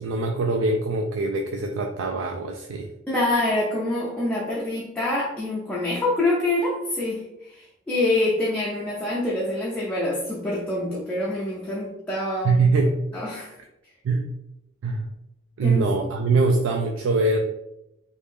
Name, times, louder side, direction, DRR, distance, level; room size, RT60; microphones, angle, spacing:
voice 1, 0.0-2.9 12.4-13.0 14.0-14.3 14.8-15.0 15.6-17.4, right 3 dB, 85° right, 3 dB, 0.4 m, -23 dB
voice 2, 3.1-12.7 13.1-13.6 15.6-15.9, left 2 dB, 5° left, -6 dB, 0.5 m, -26 dB
3.0 x 2.6 x 3.5 m, 0.87 s
head